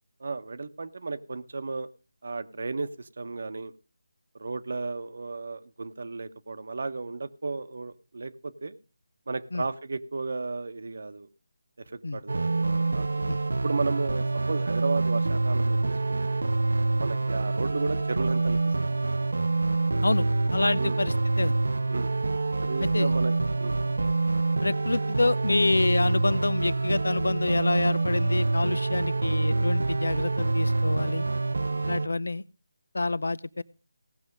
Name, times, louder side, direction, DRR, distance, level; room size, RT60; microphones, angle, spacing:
voice 1, 0.2-1.9 2.2-3.7 4.4-8.8 9.3-11.3 11.9-12.4 12.8-13.2 13.6-16.4 17.0-18.9 20.7-21.0 21.9-22.1 22.6-23.3 23.6-23.8 31.7-32.0, right 3 dB, 60° right, 11 dB, 1.0 m, -34 dB
sound 1, 12.3-32.1, right 3 dB, 75° right, 0.5 m, -26 dB
voice 2, 20.5-21.6 22.8-23.1 24.6-31.3 31.8-32.4 32.9-33.6, left 2 dB, 80° left, 20 dB, 0.6 m, -27 dB
17.0 x 6.2 x 5.2 m, 0.34 s
figure-of-eight pair, 165°, 0 cm